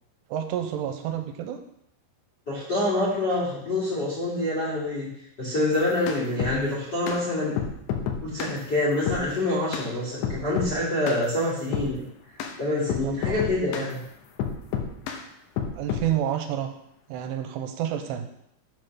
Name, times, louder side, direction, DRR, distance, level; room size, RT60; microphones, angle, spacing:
voice 1, 0.3-1.6 13.0-13.3 15.8-16.7 17.1-18.3, right 10 dB, 85° right, 6 dB, 3.1 m, -29 dB
voice 2, 2.5-5.1 5.4-7.5 8.2-12.0 12.6-14.0, left 1 dB, 30° left, -5 dB, 2.1 m, -26 dB
sound 1, 5.7-6.6 7.1-7.2 7.6-8.6 9.1-9.3 9.7-9.9 10.2-10.8 11.1-11.2 11.7-11.9 12.4-12.5 12.9-13.9 14.4-15.2 15.6-16.1, left 7 dB, 80° left, 2.9 m, -29 dB
7.9 x 4.7 x 6.1 m, 0.75 s
omnidirectional pair, 5.7 m